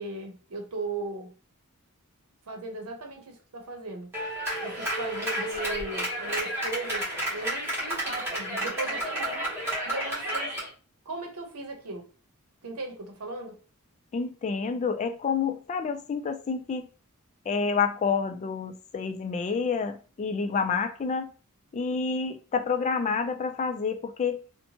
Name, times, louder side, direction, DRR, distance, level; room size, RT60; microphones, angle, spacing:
voice 1, 0.0-1.3 2.5-4.1 4.6-9.5 9.9-10.6 11.1-12.0 12.6-13.6, right 2 dB, 75° right, 0.7 m, -37 dB
Clapping, 4.1-10.7, right 1 dB, 10° right, 1.2 m, -31 dB
voice 2, 14.1-16.9 17.5-21.3 21.7-24.4, left 5 dB, 30° left, 0.3 m, -28 dB
2.7 x 2.2 x 2.9 m
head